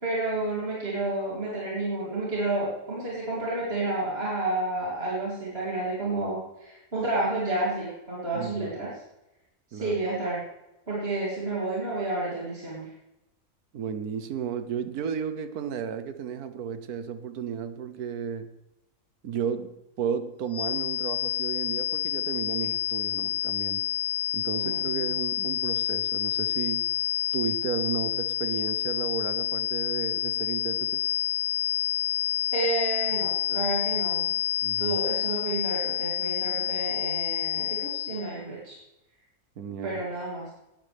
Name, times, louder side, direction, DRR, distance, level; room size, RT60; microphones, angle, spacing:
voice 1, 0.0-8.9 9.7-10.4 10.9-12.9 24.6-25.1 32.5-34.3 34.8-38.8 39.8-40.5, right 2 dB, 40° right, -7 dB, 3.6 m, -30 dB
voice 2, 8.3-8.7 9.7-10.0 13.7-18.5 19.2-23.9 24.3-26.9 27.3-31.0 34.6-35.0 39.6-40.0, right 7 dB, 75° right, 10 dB, 1.5 m, -33 dB
sound 1, 20.5-38.3, left 12 dB, 70° left, 1.2 m, -29 dB
19.5 x 12.0 x 3.6 m, 0.94 s
omnidirectional pair, 1.6 m